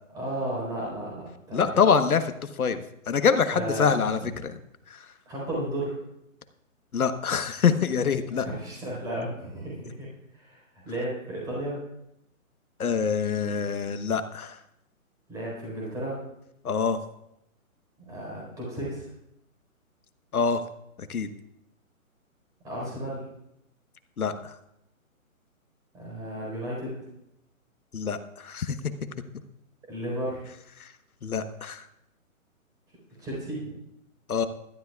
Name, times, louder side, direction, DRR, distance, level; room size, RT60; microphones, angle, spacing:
voice 1, 0.1-1.7 3.5-4.3 5.3-5.9 8.3-10.1 10.3-10.6 10.8-11.8 15.3-16.2 18.0-19.1 22.6-23.2 25.9-27.0 29.9-30.5 33.2-33.7, right 1 dB, 10° right, -5 dB, 4.3 m, -33 dB
voice 2, 1.5-4.6 4.9-5.1 6.9-8.5 12.8-14.6 16.6-17.0 20.3-20.6 21.0-21.3 24.2-24.5 27.9-28.8 30.8-30.9 31.2-31.8 34.3-34.5, left 6 dB, 85° left, 9 dB, 1.3 m, -25 dB
19.5 x 12.5 x 2.4 m, 0.82 s
hypercardioid pair, 165°, 42 cm